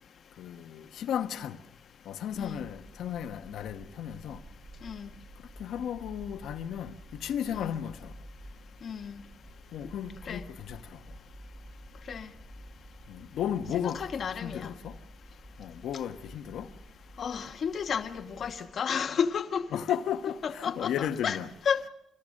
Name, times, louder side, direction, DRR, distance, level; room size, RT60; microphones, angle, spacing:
voice 1, 0.4-1.6 2.0-4.4 5.6-8.1 9.7-11.0 13.1-14.1 14.4-15.0 15.6-16.7 19.7-21.5, left 9 dB, 75° left, 1.2 m, -34 dB
sound 1, 2.3-18.7, right 1 dB, 25° right, 6.9 m, -50 dB
voice 2, 8.8-9.2 10.3-10.4 12.1-12.3 13.8-14.7 17.2-19.8 20.4-21.4 21.6-21.9, left 7 dB, 55° left, 1.2 m, -32 dB
26.0 x 17.5 x 6.5 m
cardioid pair, 90°, 0 cm